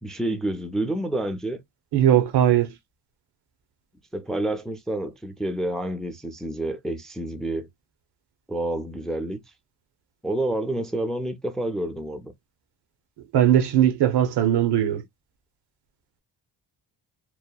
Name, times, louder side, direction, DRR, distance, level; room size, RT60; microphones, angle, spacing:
voice 1, 0.0-1.6 4.1-7.7 8.5-9.4 10.2-12.3, right 1 dB, ahead, 0.4 m, -28 dB
voice 2, 1.9-2.7 13.3-15.0, right 11 dB, 75° right, 0.7 m, -19 dB
2.9 x 2.1 x 2.2 m
cardioid pair, 110°, 40 cm